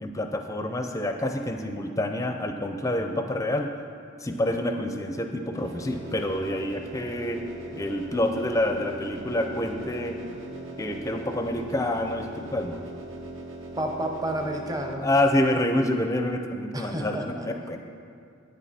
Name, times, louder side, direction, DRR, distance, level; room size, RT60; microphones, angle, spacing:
voice 1, 0.0-3.7 4.2-7.4 7.7-10.2 10.8-12.8 15.0-17.8, left 1 dB, 15° left, 5 dB, 0.4 m, -27 dB
sound 1, 5.6-14.9, right 1 dB, 70° right, 1.1 m, -40 dB
voice 2, 13.8-15.1 16.7-17.5, right 1 dB, 20° right, 2 dB, 0.7 m, -31 dB
9.1 x 8.9 x 4.2 m, 2.3 s
head